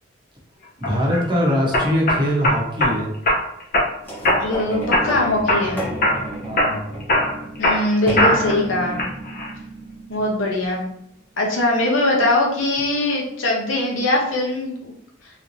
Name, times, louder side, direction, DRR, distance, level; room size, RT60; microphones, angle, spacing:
sound 1, 0.8-1.2 1.7-2.9 3.3-3.9 4.2-4.6 4.9-5.7 6.0-6.3 6.6-8.6 9.0-9.5, left 1 dB, 50° left, 0.7 m, -20 dB
voice 1, 0.8-3.1 6.4-6.8, equal, 25° right, -3 dB, 0.9 m, -22 dB
sound 2, 4.0-10.8 11.4-11.5, right 1 dB, 10° left, 0.9 m, -32 dB
voice 2, 4.4-5.8 7.6-9.0 10.1-10.8 11.4-14.9, left 2 dB, 85° left, -1 dB, 0.9 m, -21 dB
3.2 x 3.1 x 2.6 m, 0.73 s
head